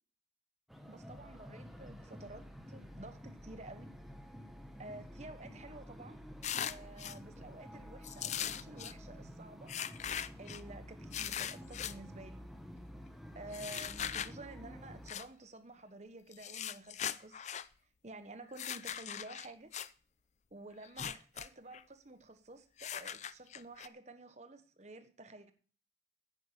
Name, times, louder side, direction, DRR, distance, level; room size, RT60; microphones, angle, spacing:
sound 1, 0.7-15.1, equal, ahead, 1.3 m, -50 dB
voice 1, 0.9-3.9 4.8-6.2 6.6-9.7 10.4-12.5 13.3-17.4 18.0-19.7 20.5-25.5, right 2 dB, 40° right, 1.2 m, -51 dB
sound 2, 6.4-7.2 8.0-8.9 9.7-10.6 11.1-11.9 13.5-14.3 15.1-15.3 16.3-17.7 18.5-19.9 20.8-21.5 21.7-21.8 22.8-23.9, left 9 dB, 40° left, 0.5 m, -40 dB
10.0 x 9.6 x 6.9 m
head